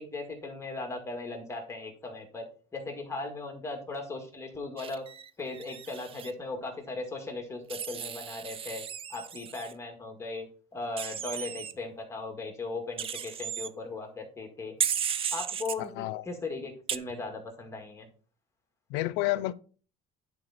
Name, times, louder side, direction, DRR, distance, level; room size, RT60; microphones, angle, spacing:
voice 1, 0.0-2.5 2.7-5.0 5.4-14.8 15.3-18.1, left 3 dB, 15° left, 1.9 m, -38 dB
Wild animals, 4.8-6.3 7.7-9.7 11.0-11.7 13.0-13.7 14.8-15.8 16.9-17.0, right 8 dB, 35° right, 0.5 m, -35 dB
voice 2, 15.8-16.2 18.9-19.5, left 17 dB, 85° left, 0.5 m, -30 dB
10.0 x 4.7 x 4.2 m
cardioid pair, 125°, 17 cm